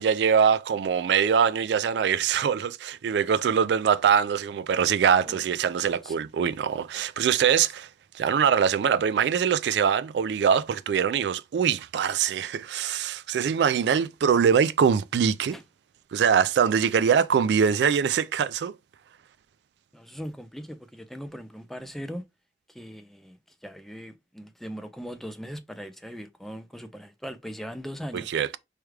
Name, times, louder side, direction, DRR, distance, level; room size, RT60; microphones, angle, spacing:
voice 1, 0.0-7.9 8.1-15.6 16.1-18.7 28.1-28.6, right 7 dB, 70° right, 0.3 m, -23 dB
voice 2, 5.7-6.2 6.9-7.0 15.5-15.6 19.9-22.2 22.7-28.3, equal, ahead, 0.4 m, -40 dB
4.8 x 2.3 x 3.2 m
head